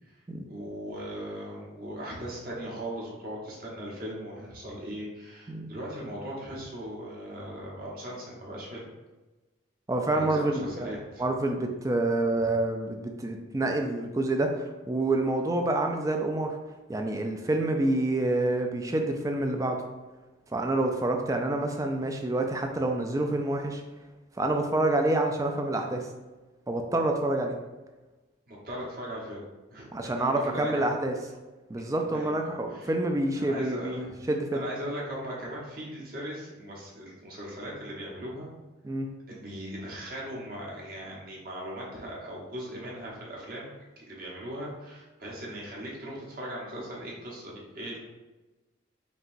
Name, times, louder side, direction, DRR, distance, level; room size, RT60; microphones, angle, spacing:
voice 1, 0.5-8.8 10.1-11.2 28.5-29.4 29.7-29.9 30.2-30.9 32.1-32.9 33.3-38.5 39.3-48.0, equal, 45° right, -4 dB, 1.0 m, -39 dB
voice 2, 9.9-10.9 11.2-16.6 16.9-19.8 20.5-23.8 24.4-26.1 26.7-27.6 29.9-31.1 31.7-34.7 38.8-39.1, right 2 dB, 15° right, 4 dB, 0.3 m, -27 dB
5.2 x 2.9 x 2.6 m, 1.2 s
head